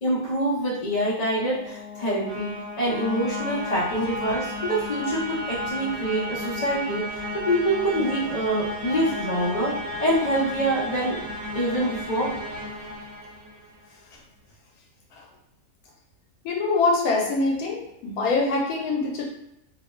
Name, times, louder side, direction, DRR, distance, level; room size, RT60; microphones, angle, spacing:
voice 1, 0.0-9.7 10.0-11.2 11.5-12.3, right 1 dB, 35° left, -7 dB, 0.7 m, -25 dB
sound 1, 0.8-13.9, left 1 dB, 70° right, 1.0 m, -34 dB
voice 2, 16.4-19.2, left 3 dB, 85° left, -1 dB, 1.1 m, -24 dB
2.8 x 2.1 x 2.2 m, 0.85 s
omnidirectional pair, 1.5 m